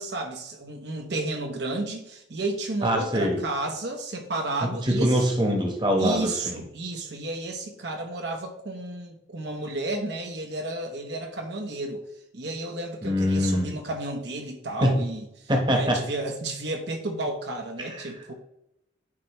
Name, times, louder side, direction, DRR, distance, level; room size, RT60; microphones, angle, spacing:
voice 1, 0.0-5.3 6.0-12.0 12.3-15.2 15.7-18.3, right 2 dB, 60° right, 3 dB, 0.9 m, -32 dB
voice 2, 2.8-3.4 4.8-6.6 13.0-13.7 14.8-14.9 15.5-16.0 17.9-18.1, equal, 25° right, 2 dB, 1.1 m, -23 dB
9.8 x 4.4 x 3.0 m, 0.83 s
head